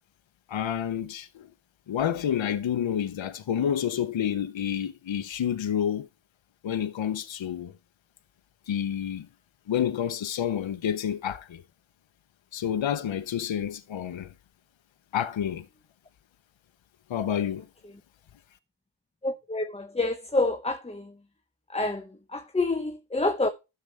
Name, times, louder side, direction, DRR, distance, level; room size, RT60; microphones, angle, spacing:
voice 1, 0.5-1.5 1.9-6.1 6.6-7.7 8.7-9.3 9.7-11.6 12.5-14.3 15.1-15.7 17.1-17.7, left 9 dB, 75° left, 0.7 m, -29 dB
voice 2, 19.2-21.1 21.7-23.5, left 2 dB, 15° left, 0.7 m, -28 dB
12.0 x 6.8 x 3.2 m
wide cardioid pair, 70°, 46 cm